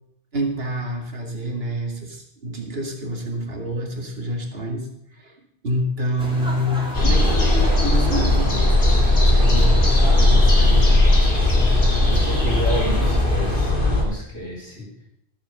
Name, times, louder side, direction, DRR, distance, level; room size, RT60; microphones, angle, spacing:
voice 1, 0.3-4.9 5.1-5.3 5.6-8.7 9.1-11.0, equal, 65° right, 3 dB, 2.3 m, -27 dB
sound 1, 6.2-13.7, equal, 5° right, 3.2 m, -34 dB
sound 2, 6.9-14.0, left 1 dB, 55° left, 2.3 m, -17 dB
voice 2, 12.1-14.9, left 1 dB, 70° left, -4 dB, 4.6 m, -31 dB
13.0 x 7.5 x 6.6 m, 0.75 s
omnidirectional pair, 1.1 m